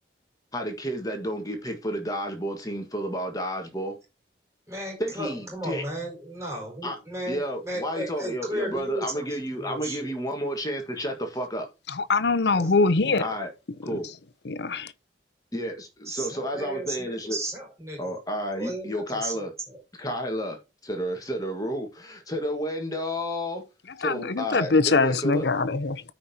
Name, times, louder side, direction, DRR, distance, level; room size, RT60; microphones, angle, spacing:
voice 1, 0.5-4.0 5.0-5.8 6.8-7.0 7.3-11.7 13.2-13.5 13.8-14.1 15.5-17.4 18.0-19.5 20.0-20.6 20.8-23.6 24.0-25.5, equal, 20° left, 1.5 m, -31 dB
voice 2, 4.7-9.2 9.5-10.1 12.4-12.7 16.0-18.1 18.6-19.8, right 1 dB, 15° right, 4.7 m, -35 dB
voice 3, 12.0-13.2 14.5-14.9 24.0-26.0, left 3 dB, 70° left, 0.7 m, -23 dB
14.0 x 5.2 x 2.8 m
head